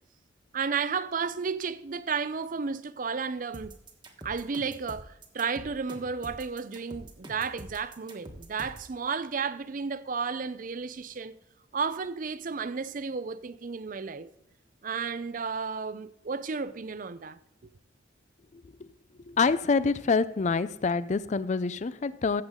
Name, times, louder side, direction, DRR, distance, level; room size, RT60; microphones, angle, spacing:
voice 1, 0.5-3.7 4.2-11.3 11.7-14.3 14.8-17.4, right 5 dB, 45° right, 0.5 m, -33 dB
sound 1, 3.5-8.9, right 1 dB, 25° right, 1.3 m, -45 dB
voice 2, 19.3-22.4, left 4 dB, 35° left, 0.4 m, -26 dB
14.5 x 8.0 x 3.7 m
head